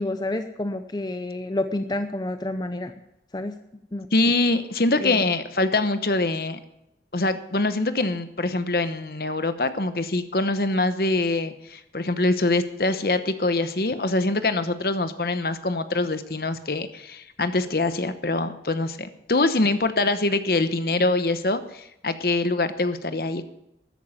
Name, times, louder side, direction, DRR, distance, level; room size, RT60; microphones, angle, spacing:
voice 1, 0.0-2.9 3.3-3.5 3.9-4.1 5.0-5.2, left 1 dB, 25° left, 8 dB, 0.6 m, -29 dB
voice 2, 4.1-6.6 7.1-23.4, left 2 dB, 55° left, 11 dB, 1.0 m, -24 dB
13.5 x 9.3 x 7.2 m, 0.83 s
head